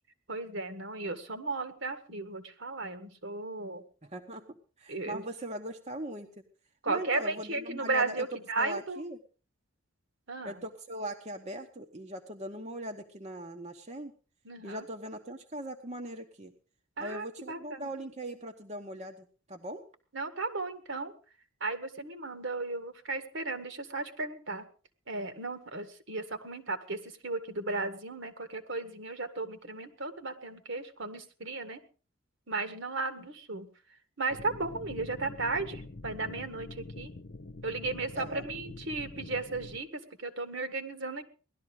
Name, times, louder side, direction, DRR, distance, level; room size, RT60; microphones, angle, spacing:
voice 1, 0.3-3.8 4.9-5.2 6.8-9.0 10.3-10.6 14.5-14.8 17.0-17.9 20.1-21.1 21.6-24.7 25.1-31.8 32.5-33.7 34.2-37.1 37.6-41.2, right 3 dB, 65° right, 8 dB, 1.8 m, -35 dB
voice 2, 4.0-4.5 4.8-6.3 6.9-8.3 8.6-9.2 10.4-14.1 14.6-16.5 17.0-19.8 38.1-38.5, right 1 dB, 30° right, 4 dB, 1.1 m, -40 dB
sound 1, 34.3-39.8, left 2 dB, 55° left, 0.9 m, -45 dB
18.0 x 12.5 x 5.0 m, 0.38 s
head